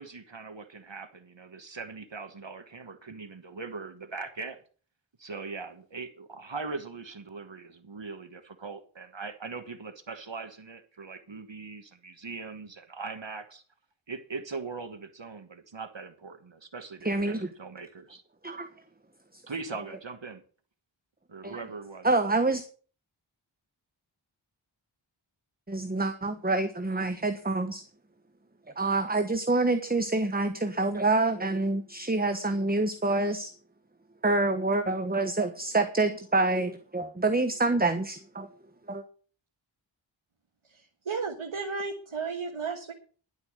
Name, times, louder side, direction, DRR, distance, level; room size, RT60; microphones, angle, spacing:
voice 1, 0.0-4.6 5.2-13.6 14.1-18.2 19.5-20.4 21.3-22.1, right 4 dB, 65° right, 8 dB, 1.3 m, -40 dB
voice 2, 17.0-17.5 18.4-18.7 19.3-19.4 21.4-21.6 22.0-22.6 25.7-27.8 28.8-33.5 34.2-38.5 38.9-39.0, right 2 dB, 20° right, 8 dB, 1.2 m, -27 dB
voice 3, 40.7-42.9, right 5 dB, 85° right, 2 dB, 1.5 m, -34 dB
11.5 x 8.2 x 6.3 m, 0.41 s
wide cardioid pair, 50°, 48 cm